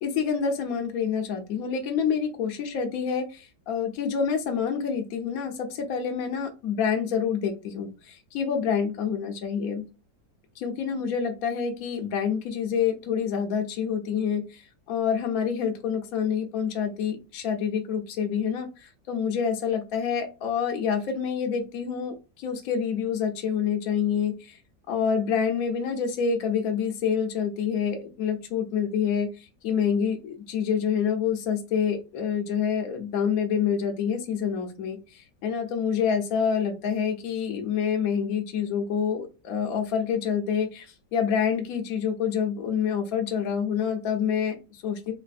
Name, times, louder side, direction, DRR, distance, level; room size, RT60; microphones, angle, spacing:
voice 1, 0.0-9.8 10.6-24.6 24.9-45.1, left 7 dB, 65° left, 4 dB, 1.0 m, -27 dB
4.0 x 3.0 x 2.5 m, 0.31 s
omnidirectional pair, 1.8 m